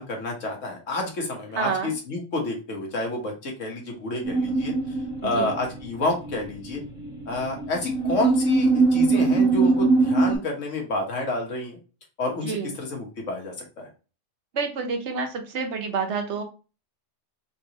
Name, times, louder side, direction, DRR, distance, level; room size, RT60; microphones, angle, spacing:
voice 1, 0.0-6.8 7.3-11.8 12.2-13.9, left 2 dB, 85° left, 1 dB, 1.7 m, -29 dB
voice 2, 1.5-1.9 5.2-5.5 12.4-12.8 14.5-16.4, right 5 dB, 70° right, 5 dB, 1.2 m, -28 dB
sound 1, 4.2-6.0 6.2-10.4, right 3 dB, 5° right, 1.4 m, -22 dB
3.8 x 3.7 x 2.9 m, 0.33 s
omnidirectional pair, 1.3 m